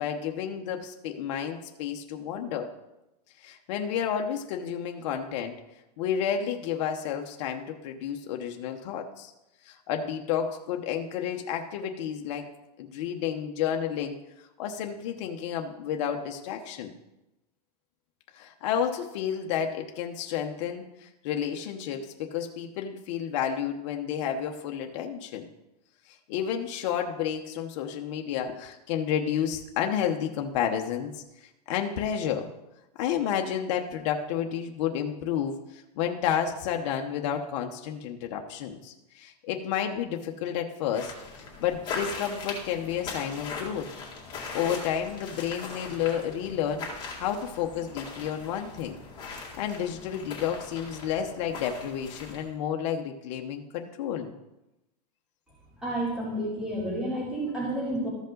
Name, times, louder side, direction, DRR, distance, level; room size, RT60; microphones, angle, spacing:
voice 1, 0.0-2.7 3.4-5.6 6.0-9.3 9.6-12.5 12.8-16.9 18.3-25.5 26.1-32.5 33.0-43.9 44.5-46.8 47.2-49.0 49.3-54.3, left 8 dB, 45° left, 3 dB, 0.9 m, -31 dB
sound 1, 40.9-52.5, left 4 dB, 20° left, 2.0 m, -40 dB
voice 2, 55.8-58.1, right 1 dB, 5° right, -6 dB, 2.7 m, -30 dB
14.0 x 5.2 x 3.8 m, 0.94 s
supercardioid pair, 160°, 21 cm